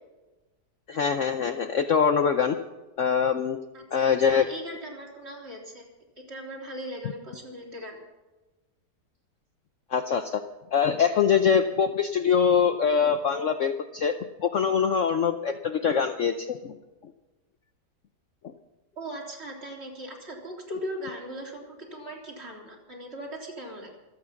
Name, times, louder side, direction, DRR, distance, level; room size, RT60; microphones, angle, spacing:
voice 1, 0.9-2.6 3.0-3.6 3.9-4.5 9.9-10.4 10.7-14.1 14.4-16.7, left 7 dB, 55° left, 7 dB, 0.9 m, -23 dB
voice 2, 3.7-5.9 6.3-8.0 18.9-23.9, equal, 35° right, -2 dB, 4.0 m, -39 dB
25.5 x 8.8 x 5.8 m, 1.1 s
omnidirectional pair, 1.8 m